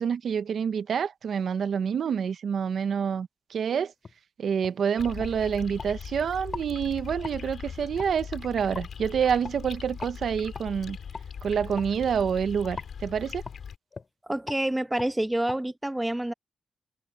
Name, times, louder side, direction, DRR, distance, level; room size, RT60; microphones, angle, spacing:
voice 1, 0.0-3.9 4.4-11.0 11.4-13.4, right 7 dB, 75° right, 0.8 m, -27 dB
sound 1, 4.0-4.2 4.6-4.8 5.2-5.9 6.5-6.7 7.2-7.4 8.0-8.1 8.7-8.9 9.4-9.6 10.0-10.2 10.5-10.7 11.1-11.3 11.7-11.9 12.8-12.9 13.4-13.6 13.9-14.1 14.5-14.6 15.0-15.1 15.5-15.6, left 4 dB, 45° left, 3.5 m, -39 dB
sound 2, 5.0-13.8, left 7 dB, 75° left, 6.3 m, -40 dB
voice 2, 14.2-16.3, right 1 dB, 10° right, 1.2 m, -28 dB
cardioid pair, 75°, 0 cm